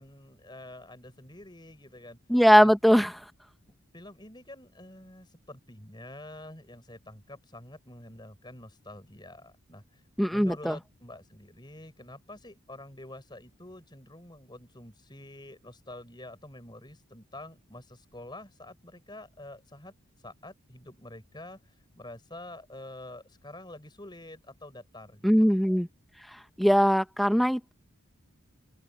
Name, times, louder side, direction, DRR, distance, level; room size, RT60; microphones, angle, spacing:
voice 1, 0.0-2.2 2.6-2.7 3.9-10.0 10.3-19.9 20.2-25.5, left 1 dB, 20° left, 5.0 m, -47 dB
voice 2, 2.3-3.2 10.2-10.8 25.2-25.9 26.3-27.7, equal, ahead, 1.2 m, -21 dB
open air
head